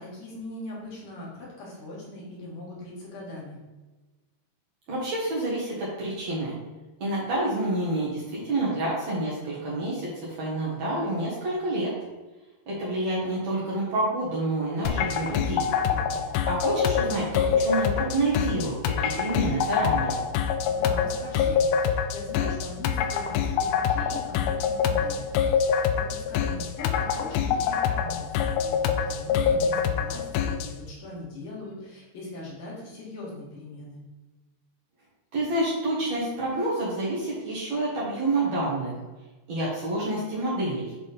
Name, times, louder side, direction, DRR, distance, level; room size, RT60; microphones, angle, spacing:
voice 1, 0.0-3.6 15.4-16.2 20.6-25.3 25.6-34.0, left 2 dB, 55° left, -5 dB, 2.9 m, -40 dB
voice 2, 4.9-6.5 7.0-11.9 12.7-15.7 16.5-20.2 35.3-38.9 39.5-40.8, right 2 dB, 55° right, -7 dB, 2.0 m, -28 dB
sound 1, 14.9-30.7, left 7 dB, 85° left, 2.3 m, -25 dB
8.8 x 3.6 x 4.2 m, 1.2 s
omnidirectional pair, 5.0 m